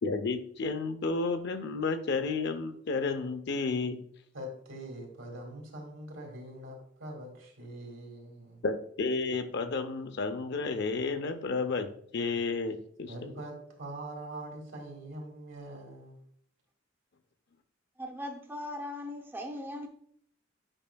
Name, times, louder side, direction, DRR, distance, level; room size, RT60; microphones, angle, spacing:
voice 1, 0.0-4.0 8.6-13.1, left 4 dB, 60° left, 0.6 m, -31 dB
voice 2, 4.3-8.6 13.1-16.2, right 1 dB, 80° right, 1.9 m, -43 dB
voice 3, 18.0-19.9, left 1 dB, 10° right, 0.6 m, -39 dB
8.8 x 5.4 x 2.2 m
head